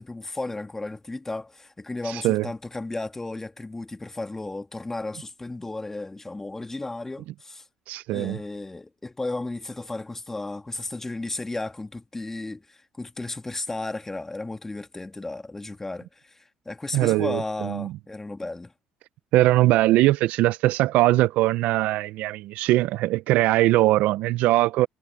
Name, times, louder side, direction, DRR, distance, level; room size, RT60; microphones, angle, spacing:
voice 1, 0.0-7.6 8.1-18.7, left 2 dB, 15° left, 2.1 m, -34 dB
voice 2, 2.0-2.5 7.9-8.4 16.9-17.9 19.3-24.9, right 17 dB, 70° right, 0.6 m, -21 dB
supercardioid pair, 85°, 3 cm